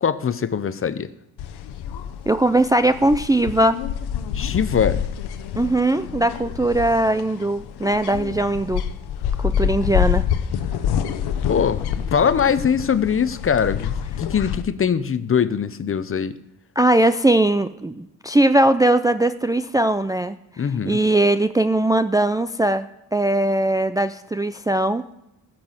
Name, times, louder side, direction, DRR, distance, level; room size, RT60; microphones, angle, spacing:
voice 1, 0.0-1.1 4.3-5.0 11.5-16.3 20.6-21.0, left 7 dB, 35° left, 14 dB, 0.8 m, -22 dB
sound 1, 1.4-14.6, left 9 dB, 85° left, 0.9 m, -27 dB
voice 2, 2.3-3.8 5.6-8.8 9.4-10.2 16.8-20.4 20.9-25.0, right 1 dB, 10° right, 10 dB, 0.4 m, -20 dB
14.0 x 6.1 x 7.3 m, 0.83 s
cardioid pair, 85°, 38 cm